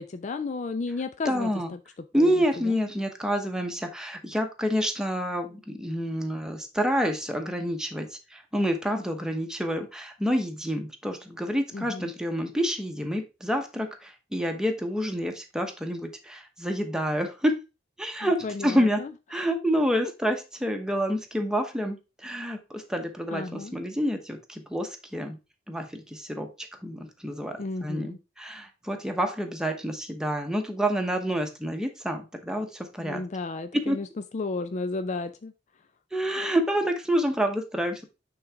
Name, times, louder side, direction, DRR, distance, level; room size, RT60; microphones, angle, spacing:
voice 1, 0.0-1.8 2.2-2.3 2.6-2.8 11.7-12.1 18.4-19.1 23.3-23.8 27.6-28.2 33.0-34.1 34.3-35.5, left 3 dB, 40° left, 9 dB, 0.4 m, -33 dB
voice 2, 1.2-1.7 2.1-17.6 18.0-19.0 19.3-25.4 25.7-33.2 33.7-34.0 36.1-38.0, equal, 5° right, 4 dB, 0.9 m, -28 dB
8.7 x 3.9 x 3.4 m, 0.28 s
head